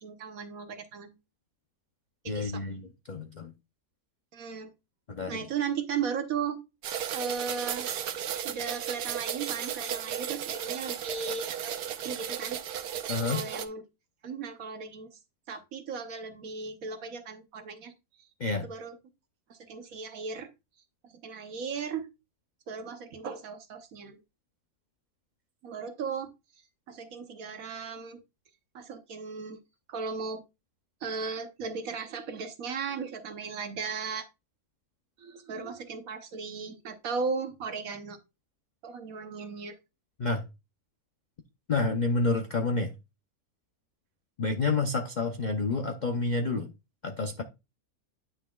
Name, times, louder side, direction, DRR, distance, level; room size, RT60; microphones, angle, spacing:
voice 1, 0.0-1.1 2.2-2.6 4.3-4.7 5.3-6.6 7.1-7.9 8.4-11.7 12.0-12.6 13.3-13.8 14.2-15.1 15.5-17.9 18.6-19.0 19.5-20.5 21.2-22.1 22.7-24.2 25.6-26.3 26.9-28.2 28.7-29.6 29.9-30.4 31.0-34.3 35.2-38.2 38.8-39.8, right 5 dB, 65° right, 1.3 m, -36 dB
voice 2, 2.3-3.5 5.1-5.4 13.1-13.4 18.4-18.7 40.2-40.4 41.7-42.9 44.4-46.7 47.0-47.4, left 3 dB, 50° left, 0.5 m, -29 dB
sound 1, 6.8-13.6, right 9 dB, 90° right, 1.3 m, -34 dB
9.7 x 5.9 x 2.3 m
omnidirectional pair, 1.6 m